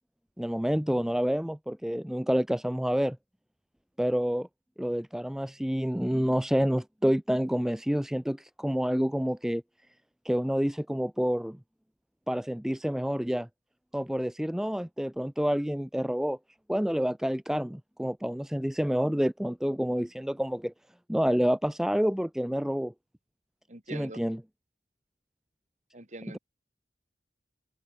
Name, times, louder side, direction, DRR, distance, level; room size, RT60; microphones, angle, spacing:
voice 1, 0.4-3.2 4.0-4.5 4.8-9.6 10.2-11.6 12.3-13.5 13.9-16.4 16.7-20.7 21.1-22.9 23.9-24.4, equal, 5° right, 0.3 m, -28 dB
voice 2, 23.7-24.2 25.9-26.4, right 2 dB, 40° right, 3.5 m, -43 dB
open air
head